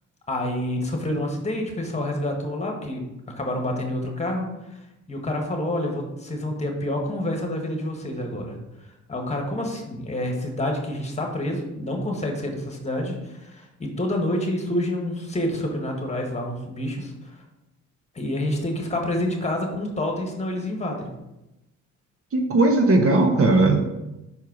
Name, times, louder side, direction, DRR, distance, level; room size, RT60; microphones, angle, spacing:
voice 1, 0.3-3.0 3.4-4.8 5.1-8.6 9.1-17.3 18.2-21.1, left 1 dB, 20° left, 2 dB, 1.6 m, -28 dB
voice 2, 22.3-23.8, right 2 dB, 50° right, 3 dB, 1.2 m, -18 dB
5.6 x 4.6 x 6.2 m, 0.95 s
cardioid pair, 90°, 30 cm